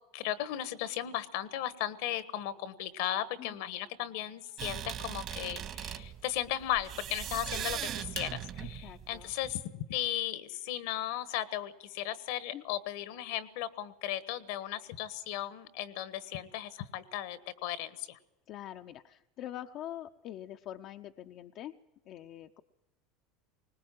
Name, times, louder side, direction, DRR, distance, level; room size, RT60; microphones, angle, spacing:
voice 1, 0.1-18.2, left 12 dB, 70° left, 14 dB, 1.3 m, -36 dB
sound 1, 4.6-9.6, right 10 dB, 50° right, 1.8 m, -39 dB
voice 2, 8.6-9.3 12.5-12.6 18.5-21.7 22.1-22.6, left 12 dB, 55° left, 7 dB, 0.7 m, -44 dB
20.5 x 19.5 x 7.7 m, 0.96 s
hypercardioid pair, 90°, 0 cm